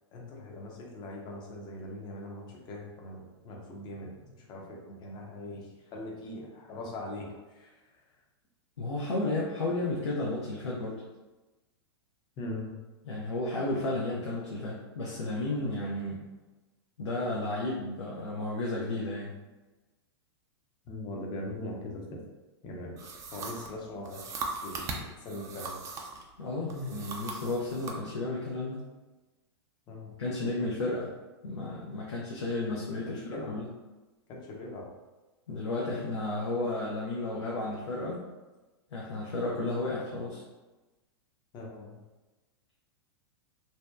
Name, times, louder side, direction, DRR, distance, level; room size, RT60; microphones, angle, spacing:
voice 1, 0.1-7.8 12.4-12.7 20.9-22.2 22.6-23.0 23.3-25.8 29.9-30.2 32.8-33.6 34.3-34.9 41.5-42.0, left 1 dB, 30° left, 0 dB, 0.5 m, -41 dB
voice 2, 8.8-11.0 13.0-16.2 17.0-19.3 26.4-28.8 30.2-31.1 31.4-33.7 35.5-38.2 38.9-40.4, left 2 dB, 90° left, -4 dB, 0.5 m, -33 dB
sound 1, 23.0-26.3 26.7-28.0, right 3 dB, 20° right, 0.3 m, -39 dB
2.6 x 2.1 x 2.2 m, 1.1 s
hypercardioid pair, 115°, 14 cm